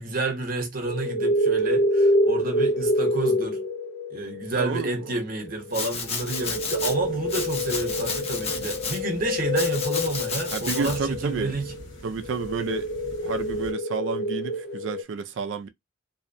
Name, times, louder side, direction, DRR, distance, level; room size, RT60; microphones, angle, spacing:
voice 1, 0.0-3.6 4.1-11.7, right 2 dB, 45° right, 0.9 m, -29 dB
sound 1, 0.9-15.0, equal, 50° left, 0.3 m, -27 dB
voice 2, 4.5-5.2 10.5-11.6 12.0-12.9 13.2-15.7, right 5 dB, 65° right, 0.4 m, -31 dB
Domestic sounds home sounds, 5.7-6.9 7.3-9.0 9.6-11.0, left 5 dB, 30° left, 0.7 m, -32 dB
sound 2, 5.9-13.7, equal, 65° left, 1.2 m, -45 dB
2.6 x 2.1 x 2.5 m
head